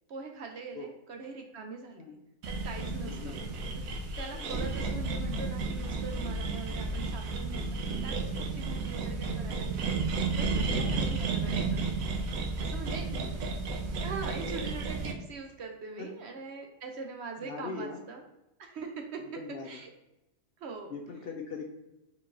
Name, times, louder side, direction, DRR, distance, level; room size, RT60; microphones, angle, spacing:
voice 1, 0.1-2.2 2.4-3.3 4.2-11.9 12.6-13.1 14.0-18.2 18.6-19.2 19.6-19.9 20.6-21.0, right 4 dB, 65° right, 3 dB, 0.7 m, -42 dB
sound 1, 2.4-15.1, right 3 dB, 80° right, 1.2 m, -32 dB
voice 2, 3.0-3.4 4.3-4.7 12.8-13.3 16.0-16.1 17.4-18.0 19.2-19.7 20.9-21.6, left 4 dB, 60° left, 2 dB, 0.7 m, -41 dB
4.4 x 3.9 x 2.5 m, 0.95 s
omnidirectional pair, 1.4 m